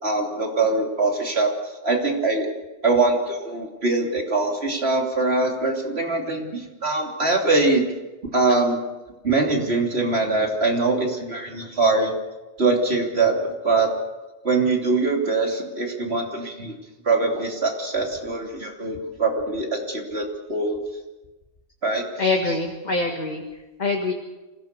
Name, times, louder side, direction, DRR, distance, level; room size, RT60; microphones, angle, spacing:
voice 1, 0.0-1.5 1.8-2.5 2.8-7.9 8.3-8.8 9.2-12.1 12.6-13.9 14.4-16.7 17.0-20.8 21.8-22.1, right 3 dB, 55° right, 1 dB, 3.4 m, -23 dB
voice 2, 22.2-23.4 23.8-24.1, left 3 dB, 35° left, 2 dB, 1.9 m, -24 dB
26.5 x 17.0 x 6.8 m, 1.1 s
omnidirectional pair, 1.3 m